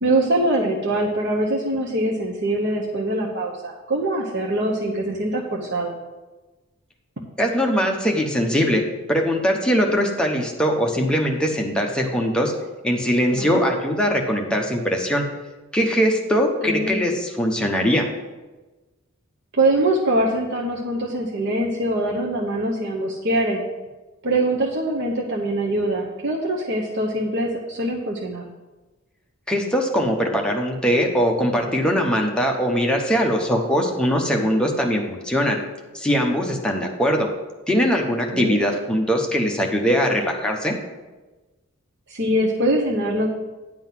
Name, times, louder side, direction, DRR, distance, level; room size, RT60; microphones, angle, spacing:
voice 1, 0.0-5.9 13.4-13.7 16.6-17.0 19.5-23.6 24.2-28.4 38.3-38.6 42.1-43.3, right 1 dB, 55° right, -1 dB, 0.9 m, -23 dB
voice 2, 7.4-8.8 9.1-12.5 12.8-15.2 15.7-18.1 29.5-35.6 35.9-37.3 37.7-40.7, equal, 5° left, 0 dB, 0.9 m, -21 dB
10.5 x 3.9 x 7.4 m, 1.2 s
head